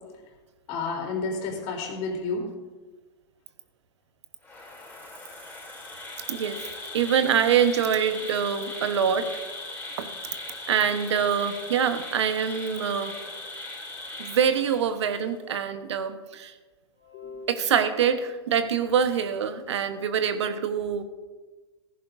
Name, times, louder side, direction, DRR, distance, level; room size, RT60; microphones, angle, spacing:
voice 1, 0.7-2.5 17.0-17.5, left 4 dB, 45° left, 1 dB, 3.4 m, -31 dB
Insect, 4.4-15.2, left 2 dB, 10° left, 3.2 m, -39 dB
voice 2, 6.9-9.3 10.0-10.1 10.7-13.1 14.2-16.5 17.5-21.0, right 8 dB, 75° right, 9 dB, 1.1 m, -25 dB
16.0 x 14.5 x 2.6 m, 1.3 s
hypercardioid pair, 110°, 15 cm